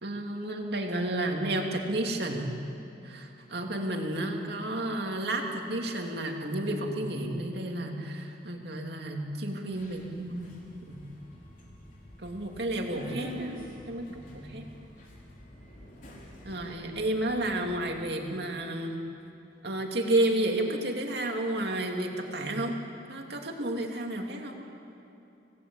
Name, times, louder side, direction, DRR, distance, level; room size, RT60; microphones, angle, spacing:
voice 1, 0.0-2.5 3.0-10.5 10.9-11.0 12.2-14.7 16.4-19.0 19.6-22.8 23.1-24.6, right 1 dB, 55° right, 1 dB, 2.7 m, -31 dB
Subway metro underground, 9.7-17.8, left 1 dB, 45° left, 4.3 m, -46 dB
26.0 x 18.5 x 8.7 m, 2.7 s
head